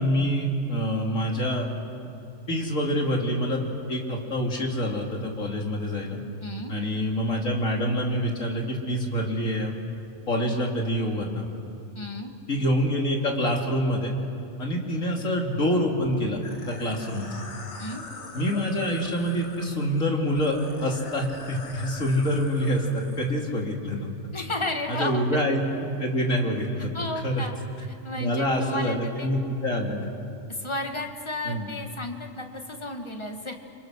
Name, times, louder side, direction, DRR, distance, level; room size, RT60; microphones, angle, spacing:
voice 1, 0.0-1.7 2.5-3.6 3.9-6.2 6.7-9.7 10.3-11.5 12.5-14.1 14.6-16.4 16.7-17.3 18.3-20.6 20.8-24.1 24.9-26.9 27.2-27.5 28.2-30.1 31.4-31.7, equal, 85° left, 0 dB, 3.4 m, -26 dB
voice 2, 6.4-6.7 11.9-12.3 17.8-18.0 24.3-25.5 26.9-27.5 28.0-29.3 30.5-33.5, left 2 dB, 20° left, 3 dB, 1.9 m, -33 dB
sound 1, 16.4-23.3, left 3 dB, 60° left, 2.1 m, -42 dB
29.5 x 25.5 x 6.5 m, 2.8 s
omnidirectional pair, 1.3 m